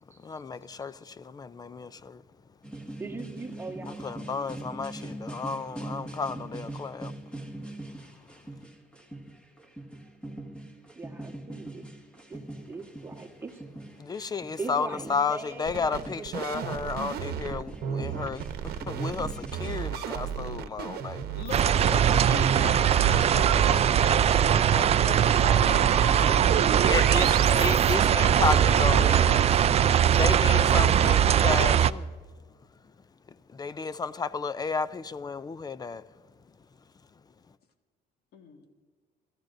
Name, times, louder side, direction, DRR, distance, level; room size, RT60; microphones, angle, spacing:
voice 1, 0.2-2.2 3.8-7.1 8.0-8.4 14.0-21.4 26.2-29.6 30.1-32.1 33.3-36.1, left 5 dB, 25° left, 0.4 m, -33 dB
sound 1, 2.6-19.9, right 1 dB, 5° left, 1.8 m, -42 dB
voice 2, 2.7-4.5 10.9-11.9 12.3-12.4 12.7-13.6 14.6-17.5, right 4 dB, 15° right, 1.4 m, -41 dB
sound 2, 15.6-31.1, right 9 dB, 65° right, 1.0 m, -33 dB
voice 3, 21.3-26.4 26.9-27.7 38.3-38.6, left 4 dB, 70° left, 1.8 m, -39 dB
sound 3, 21.5-31.9, right 9 dB, 40° right, 0.4 m, -21 dB
27.0 x 13.5 x 2.6 m
cardioid pair, 110°, 17 cm